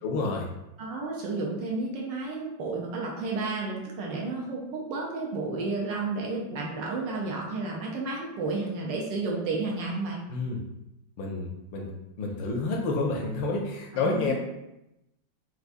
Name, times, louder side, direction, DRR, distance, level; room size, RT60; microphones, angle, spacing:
voice 1, 0.0-0.5 10.3-10.6 11.2-11.9 12.2-14.3, left 3 dB, 75° left, 0 dB, 1.1 m, -29 dB
voice 2, 0.8-10.2 13.9-14.3, right 3 dB, 75° right, -2 dB, 1.1 m, -32 dB
4.6 x 2.2 x 2.5 m, 0.91 s
omnidirectional pair, 2.4 m